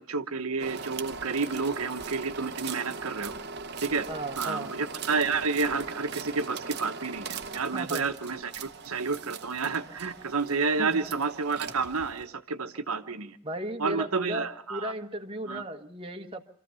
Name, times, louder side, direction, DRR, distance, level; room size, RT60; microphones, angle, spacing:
voice 1, 0.0-3.3 3.8-4.1 4.4-13.4 13.8-14.9 15.5-15.6, right 4 dB, 75° right, 7 dB, 1.1 m, -30 dB
sound 1, 0.6-12.2, right 5 dB, 50° right, 0.9 m, -40 dB
voice 2, 4.1-4.8 7.7-8.1 10.8-11.0 13.4-16.4, right 1 dB, 25° right, 4 dB, 1.1 m, -35 dB
26.0 x 14.5 x 6.9 m, 0.70 s
head